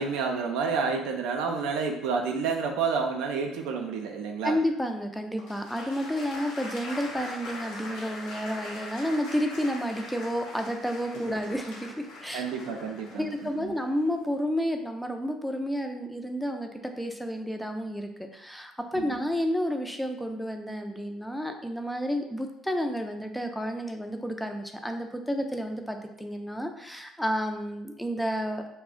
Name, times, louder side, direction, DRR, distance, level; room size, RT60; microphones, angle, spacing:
voice 1, 0.0-4.6 12.3-13.7 18.9-19.2, right 5 dB, 75° right, 3 dB, 0.3 m, -30 dB
voice 2, 4.4-12.4 13.1-16.7 17.0-28.6, equal, 5° left, 4 dB, 0.4 m, -31 dB
Applause, 5.4-14.3, left 2 dB, 70° left, 0.7 m, -42 dB
2.3 x 2.0 x 3.6 m, 0.81 s
hypercardioid pair, 55°, 0 cm